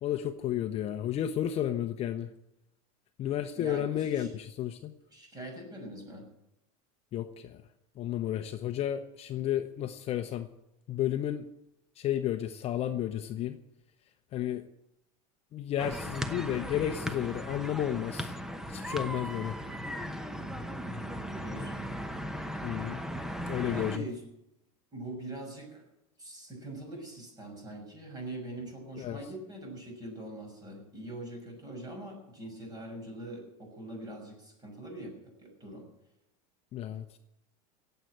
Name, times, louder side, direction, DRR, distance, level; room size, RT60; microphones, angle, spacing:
voice 1, 0.0-2.3 3.2-4.9 7.1-7.6 8.0-10.5 10.9-11.4 12.0-13.6 14.3-14.7 15.5-18.3 18.7-19.6 22.6-23.0 23.5-24.1 28.9-29.2 36.7-37.2, left 11 dB, 35° left, 7 dB, 0.9 m, -32 dB
voice 2, 3.6-4.3 5.1-6.2 21.4-21.9 23.6-24.2 24.9-25.8 26.2-35.9, right 1 dB, 20° right, 2 dB, 6.3 m, -43 dB
sound 1, 15.8-24.0, equal, 5° right, 0.9 m, -37 dB
17.5 x 8.0 x 8.7 m, 0.85 s
supercardioid pair, 140°, 18 cm